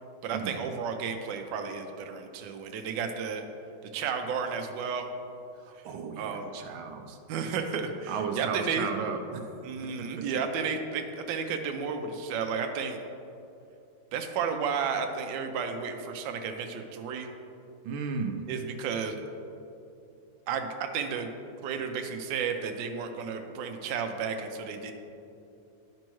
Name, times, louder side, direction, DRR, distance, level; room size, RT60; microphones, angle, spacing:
voice 1, 0.2-3.4 3.9-5.1 6.2-6.5 7.3-8.9 9.6-13.0 14.1-17.3 18.5-19.1 20.5-21.3 21.6-24.9, right 6 dB, 70° right, 4 dB, 1.2 m, -32 dB
voice 2, 5.6-7.2 8.1-9.5 10.0-10.2 17.8-18.5, right 5 dB, 85° right, 5 dB, 1.4 m, -35 dB
10.5 x 5.3 x 3.1 m, 2.7 s
omnidirectional pair, 2.2 m